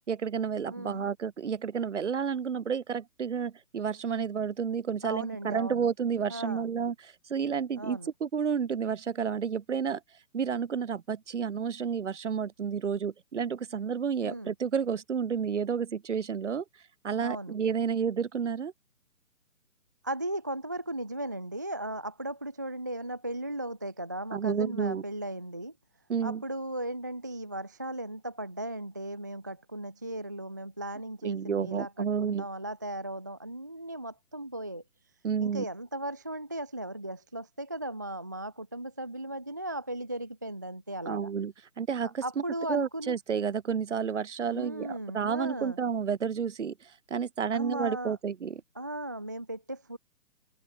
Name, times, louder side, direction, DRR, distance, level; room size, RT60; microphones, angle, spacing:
voice 1, 0.1-10.0 10.3-16.6 17.0-18.7 24.3-25.0 26.1-26.4 31.2-32.5 35.2-35.7 41.1-42.2 42.7-48.6, right 6 dB, 55° right, 2.0 m, -31 dB
voice 2, 0.7-1.1 5.0-5.9 6.3-6.7 7.8-8.1 14.2-14.5 17.2-17.6 20.0-25.7 26.2-34.8 35.4-41.3 42.0-43.2 44.5-45.8 47.5-48.2 48.8-50.0, right 1 dB, 15° right, 0.5 m, -37 dB
open air
figure-of-eight pair, 140°, 43 cm